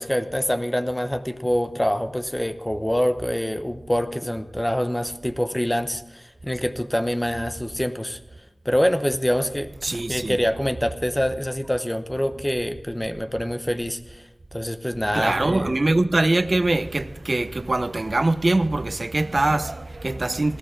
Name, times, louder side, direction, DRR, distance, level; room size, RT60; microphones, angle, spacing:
voice 1, 0.0-8.2 8.6-15.8, equal, 15° left, 0.9 m, -25 dB
voice 2, 9.8-10.4 15.1-20.6, right 2 dB, 50° right, 0.8 m, -23 dB
19.5 x 14.5 x 3.8 m
wide cardioid pair, 50°, 0 cm